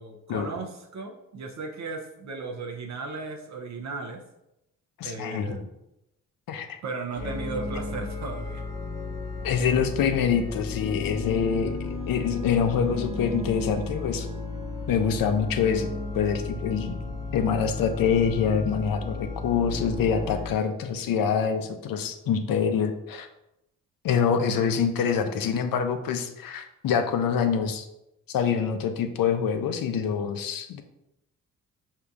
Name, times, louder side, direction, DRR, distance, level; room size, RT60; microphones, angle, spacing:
voice 1, 0.0-4.2 5.0-5.7 6.8-8.6, right 3 dB, 50° right, 3 dB, 0.5 m, -36 dB
voice 2, 5.0-5.6 6.5-6.8 9.4-14.3 14.9-23.3 24.0-27.9 28.3-30.8, left 7 dB, 70° left, 7 dB, 0.6 m, -25 dB
sound 1, 7.2-20.5, left 3 dB, 10° left, 0.9 m, -34 dB
4.9 x 2.8 x 2.3 m, 0.87 s
cardioid pair, 65°, 36 cm